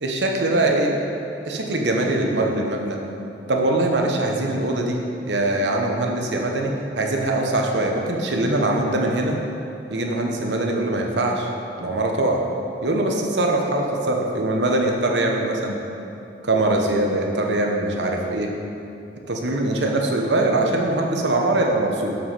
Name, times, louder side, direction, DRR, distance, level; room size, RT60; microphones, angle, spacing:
voice 1, 0.0-0.9 1.5-3.0 3.5-9.4 9.9-11.5 11.8-12.4 12.8-15.8 16.4-18.5 19.3-22.2, right 2 dB, 80° right, 1 dB, 1.0 m, -22 dB
7.1 x 5.9 x 5.7 m, 2.8 s
head